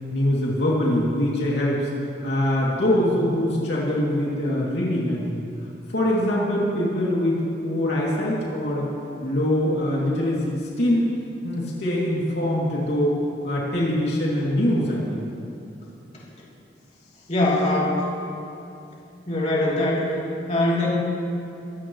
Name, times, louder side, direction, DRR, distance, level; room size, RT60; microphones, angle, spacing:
voice 1, 0.1-1.9 2.2-5.4 5.9-8.9 9.2-11.1 11.4-13.2 13.4-15.2, left 1 dB, 65° left, -5 dB, 2.8 m, -23 dB
voice 2, 17.3-18.1 19.2-20.1 20.5-20.9, left 1 dB, 40° left, -6 dB, 3.2 m, -22 dB
23.5 x 16.0 x 3.2 m, 2.8 s
head